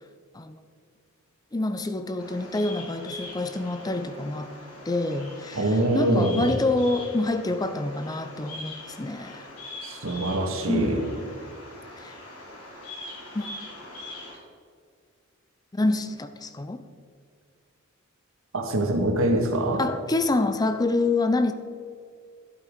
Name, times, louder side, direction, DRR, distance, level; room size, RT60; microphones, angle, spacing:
voice 1, 1.5-4.5 4.9-9.5 10.7-10.9 12.0-12.2 13.3-13.5 15.7-16.8 19.8-21.5, left 2 dB, 20° left, 10 dB, 0.5 m, -27 dB
Bird vocalization bird call bird song, 2.2-14.4, left 1 dB, 80° left, 3.1 m, -42 dB
voice 2, 5.6-6.5 9.8-11.0 18.5-19.8, right 1 dB, 70° right, 3 dB, 1.7 m, -24 dB
12.0 x 8.4 x 5.1 m, 2.2 s
head